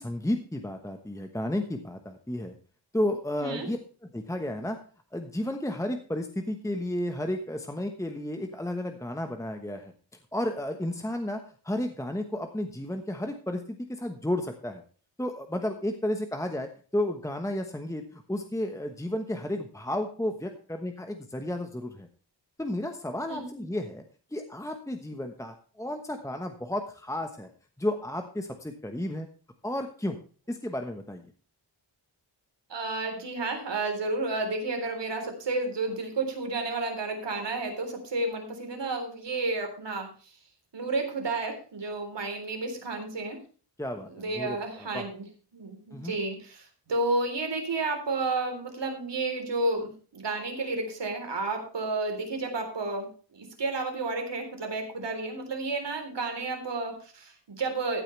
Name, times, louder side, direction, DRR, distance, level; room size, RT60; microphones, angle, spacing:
voice 1, 0.0-2.5 2.9-3.8 4.0-4.8 5.1-9.9 10.3-11.4 11.6-14.8 15.2-22.1 22.6-24.0 24.3-27.5 27.8-29.3 29.6-30.2 30.5-31.2 43.8-45.1 45.9-46.1, left 1 dB, 5° left, 5 dB, 1.1 m, -32 dB
voice 2, 32.7-40.1 40.7-43.4 44.1-45.3 45.5-58.0, right 3 dB, 70° right, 4 dB, 3.8 m, -31 dB
15.0 x 8.8 x 3.3 m, 0.39 s
wide cardioid pair, 125°, 44 cm